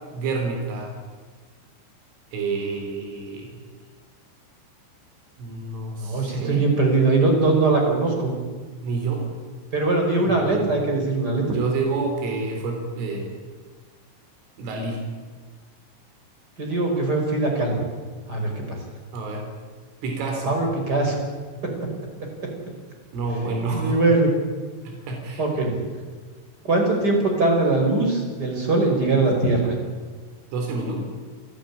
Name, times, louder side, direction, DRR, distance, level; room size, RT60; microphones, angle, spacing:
voice 1, 0.1-0.9 2.3-3.5 5.4-6.6 8.8-9.2 10.3-10.7 11.6-13.4 14.6-15.0 19.1-19.4 20.0-20.6 23.1-24.0 25.1-25.4 30.5-31.0, right 3 dB, 85° right, 2 dB, 6.1 m, -28 dB
voice 2, 6.0-8.3 9.7-11.4 16.6-17.8 18.3-18.8 20.5-21.2 21.6-21.7 23.7-24.3 25.4-25.7 26.6-29.7, right 2 dB, 20° right, 2 dB, 5.3 m, -21 dB
29.0 x 14.5 x 10.0 m, 1.5 s
omnidirectional pair, 5.6 m